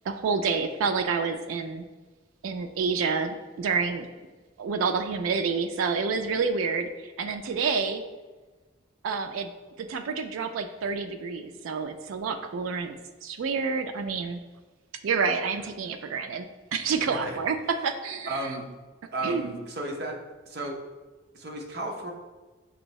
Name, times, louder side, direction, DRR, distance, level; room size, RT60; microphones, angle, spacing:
voice 1, 0.0-1.8 2.4-4.1 4.6-8.0 9.0-9.5 9.8-14.4 15.0-18.5 19.2-19.6, right 5 dB, 85° right, 6 dB, 0.3 m, -28 dB
voice 2, 17.0-17.4 18.3-18.6 19.1-20.2 20.5-20.8 21.3-22.1, right 2 dB, 50° right, 1 dB, 0.7 m, -33 dB
6.1 x 2.6 x 3.1 m, 1.3 s
head